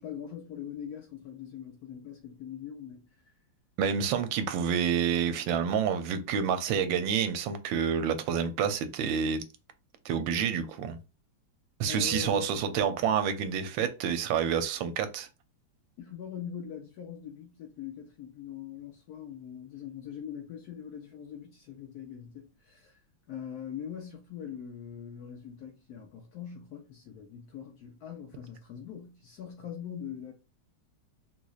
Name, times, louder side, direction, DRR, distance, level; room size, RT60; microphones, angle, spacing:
voice 1, 0.0-3.4 11.8-12.6 16.0-23.0 23.3-30.3, left 9 dB, 75° left, 0.9 m, -42 dB
voice 2, 3.8-9.4 10.0-11.0 11.8-15.3, right 7 dB, 80° right, 1.3 m, -28 dB
3.8 x 3.0 x 2.3 m
omnidirectional pair, 2.1 m